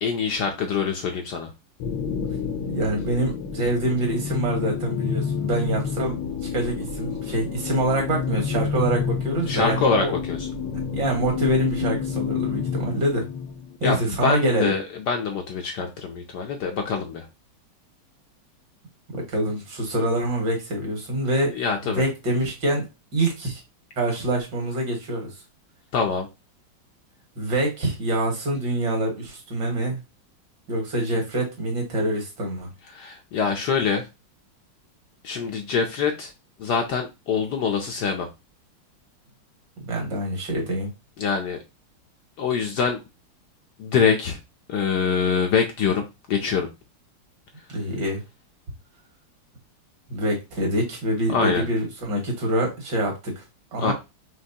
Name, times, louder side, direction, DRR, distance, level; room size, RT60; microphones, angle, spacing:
voice 1, 0.0-1.5 9.5-10.5 13.8-17.2 21.5-22.0 25.9-26.3 32.9-34.1 35.2-36.3 36.6-38.3 41.2-41.6 42.4-43.0 43.8-44.4 44.7-46.7 51.3-51.6 53.8-53.9, left 5 dB, 70° left, 3 dB, 1.1 m, -24 dB
sound 1, 1.8-13.8, left 6 dB, 90° left, 1.6 m, -29 dB
voice 2, 2.7-10.2 10.9-13.2 13.8-14.7 19.1-22.9 23.1-23.6 24.0-25.3 27.4-30.0 30.7-32.7 39.8-40.9 47.7-48.2 50.1-53.4 53.7-53.9, right 1 dB, 60° right, 1 dB, 2.1 m, -25 dB
5.3 x 3.0 x 2.7 m, 0.24 s
omnidirectional pair, 2.3 m